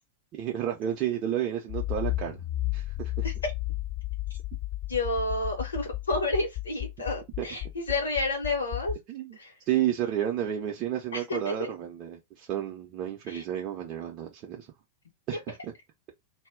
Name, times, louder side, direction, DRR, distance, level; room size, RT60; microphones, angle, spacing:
voice 1, 0.3-2.4 2.7-3.3 7.4-7.5 9.1-9.4 9.7-14.7 15.3-15.7, right 11 dB, 35° right, 0.5 m, -31 dB
Accelerating revving vroom, 1.7-9.0, left 17 dB, 45° left, 0.4 m, -33 dB
voice 2, 4.9-8.9 9.3-9.5 11.1-11.7 13.3-13.4, left 2 dB, 70° left, 0.7 m, -30 dB
2.0 x 2.0 x 3.6 m
figure-of-eight pair, 90°, 0 cm